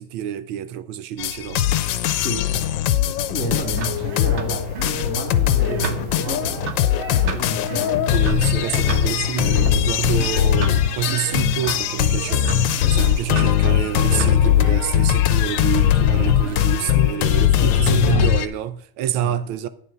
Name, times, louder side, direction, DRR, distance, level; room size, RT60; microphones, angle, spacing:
voice 1, 0.0-1.7 8.1-19.7, right 10 dB, 80° right, 1.4 m, -27 dB
sound 1, 1.2-18.5, left 11 dB, 75° left, 1.2 m, -20 dB
voice 2, 2.2-2.7 3.0-6.7 7.2-8.1 16.1-16.4 17.5-18.4 19.2-19.4, left 1 dB, 15° left, 1.5 m, -31 dB
sound 2, 3.6-17.2, right 6 dB, 65° right, 0.7 m, -32 dB
10.0 x 4.0 x 6.8 m
omnidirectional pair, 2.2 m